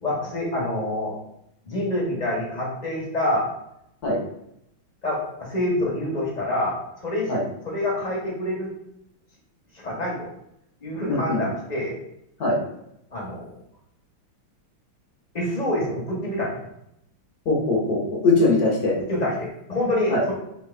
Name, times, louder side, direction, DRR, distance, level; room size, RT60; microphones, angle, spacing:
voice 1, 0.0-1.1 1.7-3.5 5.0-7.4 7.6-8.7 9.8-10.3 10.8-12.0 13.1-13.5 15.3-16.6 19.1-20.3, left 1 dB, 25° left, -3 dB, 1.1 m, -26 dB
voice 2, 11.1-11.4 12.4-12.6 17.4-19.0 20.1-20.2, left 2 dB, 55° left, -3 dB, 1.5 m, -21 dB
3.6 x 3.2 x 4.4 m, 0.78 s
omnidirectional pair, 2.2 m